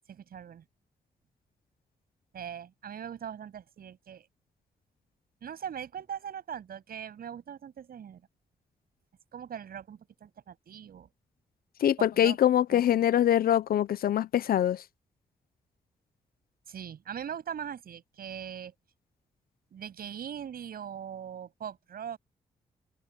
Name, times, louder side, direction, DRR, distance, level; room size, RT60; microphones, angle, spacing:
voice 1, 0.1-0.6 2.3-4.3 5.4-8.2 9.3-11.1 12.0-12.4 12.7-12.8 16.7-18.7 19.7-22.2, right 8 dB, 75° right, 7.7 m, -41 dB
voice 2, 11.8-14.8, left 11 dB, 75° left, 0.7 m, -24 dB
open air
supercardioid pair, 45°, 16 cm